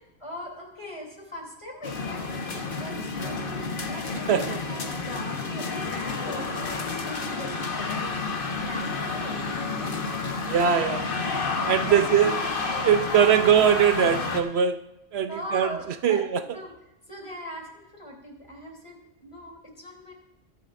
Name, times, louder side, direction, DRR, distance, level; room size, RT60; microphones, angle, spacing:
voice 1, 0.2-11.0 11.9-12.1 13.1-13.6 15.2-16.2 16.5-16.7 17.1-20.1, equal, 25° left, -1 dB, 3.2 m, -40 dB
sound 1, 1.8-14.4, left 4 dB, 55° left, 1.3 m, -30 dB
voice 2, 4.3-4.6 10.5-11.0 11.6-12.3 12.8-14.8 15.1-15.7 16.0-16.4, right 8 dB, 75° right, 9 dB, 0.9 m, -21 dB
22.5 x 10.5 x 2.6 m, 0.92 s
omnidirectional pair, 1.1 m